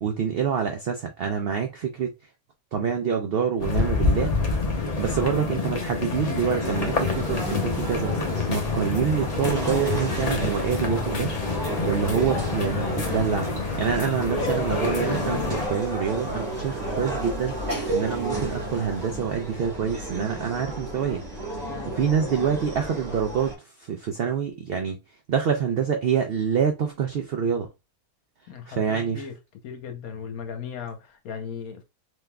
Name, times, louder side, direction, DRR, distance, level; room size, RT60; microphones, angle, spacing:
voice 1, 0.0-2.1 2.7-4.3 5.0-8.1 8.5-11.3 11.8-13.5 13.8-17.5 17.9-21.2 22.0-23.6 23.9-25.0 25.3-27.7 28.7-29.2, right 7 dB, 85° right, 0.5 m, -26 dB
sound 1, 3.6-15.7, left 4 dB, 40° left, 0.5 m, -28 dB
sound 2, 6.6-23.5, right 1 dB, 30° right, 1.2 m, -32 dB
Laughter, 14.3-19.4, equal, 10° right, 1.2 m, -34 dB
voice 2, 21.7-22.0 28.5-29.4 29.6-31.8, left 6 dB, 75° left, 1.2 m, -37 dB
3.5 x 2.9 x 2.2 m
omnidirectional pair, 1.6 m